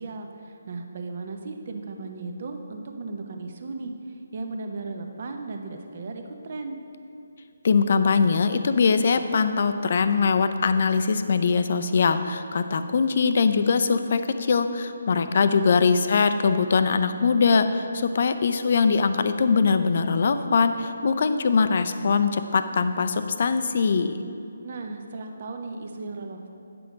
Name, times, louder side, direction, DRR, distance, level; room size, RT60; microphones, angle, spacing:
voice 1, 0.0-6.8 15.1-15.9 24.6-26.5, right 3 dB, 45° right, 4 dB, 0.8 m, -36 dB
voice 2, 7.6-24.1, left 5 dB, 50° left, 10 dB, 0.5 m, -22 dB
9.3 x 6.1 x 5.0 m, 2.6 s
figure-of-eight pair, 145°, 0 cm